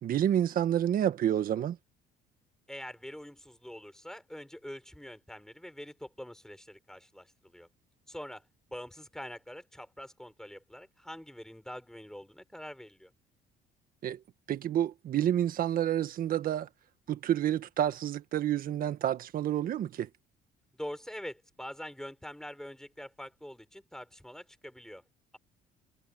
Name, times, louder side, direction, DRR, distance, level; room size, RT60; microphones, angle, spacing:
voice 1, 0.0-1.8 14.0-14.2 14.5-16.7 17.1-20.1, right 11 dB, 55° right, 1.6 m, -29 dB
voice 2, 2.7-7.7 8.1-13.1 20.7-25.0, equal, 5° left, 5.9 m, -45 dB
cardioid pair, 110°, 17 cm